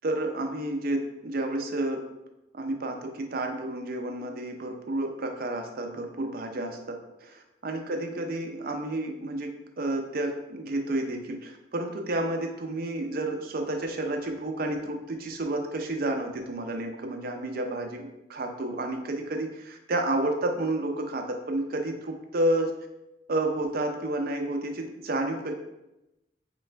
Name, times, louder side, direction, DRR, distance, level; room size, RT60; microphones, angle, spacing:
voice 1, 0.0-2.0 2.5-22.7 23.3-25.5, right 1 dB, 55° right, 3 dB, 0.6 m, -30 dB
3.2 x 3.0 x 4.4 m, 0.92 s
head